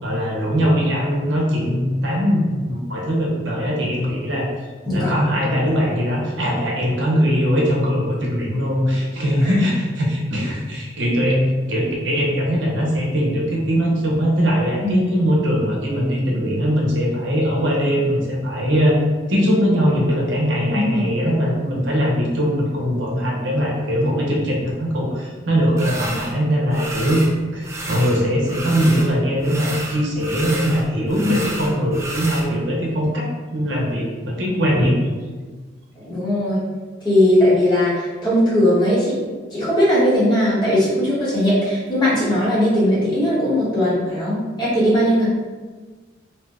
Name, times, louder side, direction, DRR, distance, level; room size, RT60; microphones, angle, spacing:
voice 1, 0.0-4.5 4.9-19.0 19.3-27.2 27.5-33.3 33.5-34.9, equal, 75° right, -3 dB, 0.7 m, -21 dB
voice 2, 4.8-5.3 9.4-9.5 14.8-15.0 20.7-21.0 31.2-31.4 36.1-36.6 37.0-39.3 39.5-45.2, left 1 dB, 20° left, -9 dB, 1.0 m, -18 dB
sound 1, 25.8-26.3 26.7-27.3 27.6-29.1 29.4-32.5, right 1 dB, 15° right, 0.3 m, -31 dB
2.7 x 2.1 x 3.5 m, 1.4 s
head